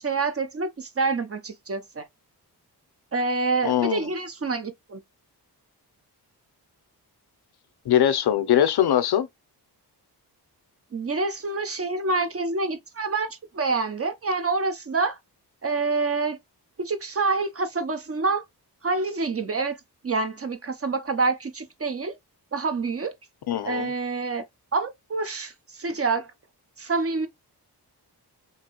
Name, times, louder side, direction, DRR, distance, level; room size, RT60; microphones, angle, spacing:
voice 1, 0.0-2.0 3.1-5.0 10.9-15.2 15.6-16.4 16.8-18.4 18.8-19.8 20.0-22.2 22.5-23.1 23.6-24.4 24.7-26.3 26.8-27.3, right 3 dB, 35° right, 0.6 m, -27 dB
voice 2, 3.6-4.1 7.9-9.3 23.5-23.9, left 10 dB, 70° left, 0.6 m, -22 dB
2.9 x 2.7 x 2.9 m
cardioid pair, 90°, 41 cm